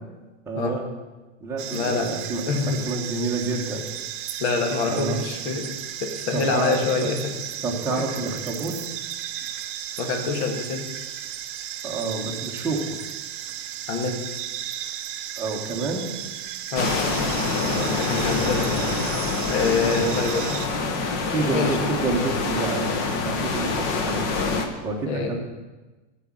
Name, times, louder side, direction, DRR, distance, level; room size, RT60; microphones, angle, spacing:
voice 1, 0.5-0.9 1.4-2.5 2.9-3.8 4.9-5.2 6.3-6.8 7.6-9.0 11.8-13.0 15.4-16.1 17.6-18.0 19.8-20.2 21.2-22.9 23.2-24.2 24.8-25.4, right 3 dB, 5° right, -2 dB, 1.1 m, -28 dB
sound 1, 1.6-20.7, right 11 dB, 40° right, 0.6 m, -34 dB
voice 2, 1.7-2.2 2.5-2.9 4.4-5.7 6.0-7.3 8.0-8.1 10.0-10.9 13.9-14.3 16.7-17.1 17.9-18.9 19.5-20.5 21.4-21.9 25.1-25.4, left 4 dB, 55° left, 3 dB, 1.9 m, -26 dB
sound 2, 16.8-24.7, left 4 dB, 25° left, 0.8 m, -26 dB
14.5 x 5.1 x 7.3 m, 1.2 s
supercardioid pair, 180°, 38 cm